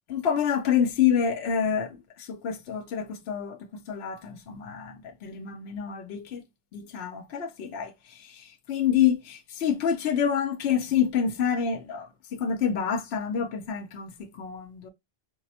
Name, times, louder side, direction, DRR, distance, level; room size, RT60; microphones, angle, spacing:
voice 1, 0.1-6.4 6.7-7.9 8.3-14.9, left 8 dB, 65° left, 0.8 m, -27 dB
4.4 x 2.0 x 2.8 m
omnidirectional pair, 1.2 m